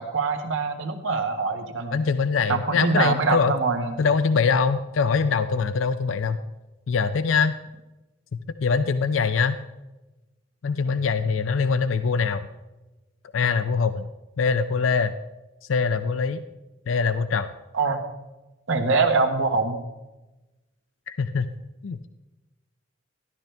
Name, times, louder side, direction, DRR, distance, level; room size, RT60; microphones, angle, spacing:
voice 1, 0.0-2.0 2.5-4.0 17.7-18.0 18.7-19.8, right 4 dB, 80° right, 4 dB, 1.4 m, -24 dB
voice 2, 1.9-3.5 4.0-6.4 6.9-7.5 8.6-9.6 10.6-12.5 13.3-14.1 14.4-15.1 15.7-16.4 16.9-17.5 21.1-21.5 21.8-22.1, left 5 dB, 85° left, 12 dB, 0.5 m, -23 dB
13.0 x 11.5 x 3.4 m, 1.1 s
head